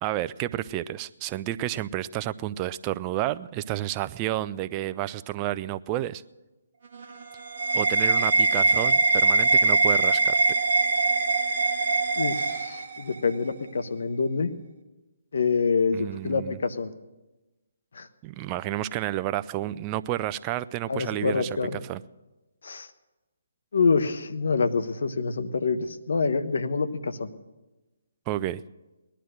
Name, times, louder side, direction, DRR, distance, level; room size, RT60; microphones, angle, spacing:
voice 1, 0.0-6.2 7.7-10.6 15.9-16.6 18.2-22.0 28.3-28.6, right 14 dB, 25° right, 14 dB, 0.4 m, -31 dB
sound 1, 6.8-13.3, right 3 dB, 50° right, 1.5 m, -23 dB
voice 2, 12.2-14.5 15.3-16.9 17.9-18.1 20.9-21.8 22.6-22.9 23.7-27.3, left 4 dB, 65° left, 10 dB, 1.1 m, -26 dB
19.0 x 12.0 x 6.4 m, 1.1 s
figure-of-eight pair, 145°, 0 cm